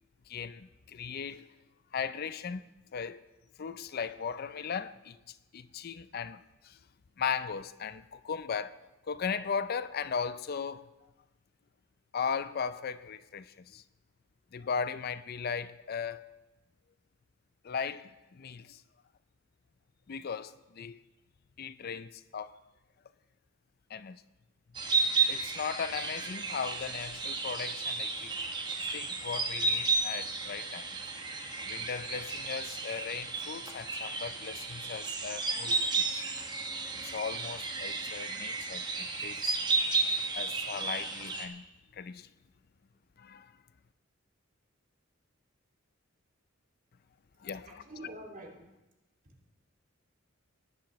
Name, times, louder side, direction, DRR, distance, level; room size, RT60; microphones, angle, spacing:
voice 1, 0.3-1.5 1.9-2.7 2.9-3.3 3.6-6.8 7.2-8.8 9.1-10.9 12.1-13.8 14.5-16.2 17.6-18.8 20.1-21.0 21.6-22.6 23.9-24.2 25.3-28.3 28.9-30.9 31.7-36.3 36.9-39.6 40.3-41.6 41.9-42.3 43.2-43.6 47.4-48.1, left 6 dB, 50° left, 0.4 m, -37 dB
sound 1, 24.7-41.5, right 4 dB, 20° right, 1.0 m, -33 dB
voice 2, 47.7-48.7 49.2-49.5, right 1 dB, 45° right, 2.4 m, -47 dB
19.5 x 10.0 x 3.1 m
head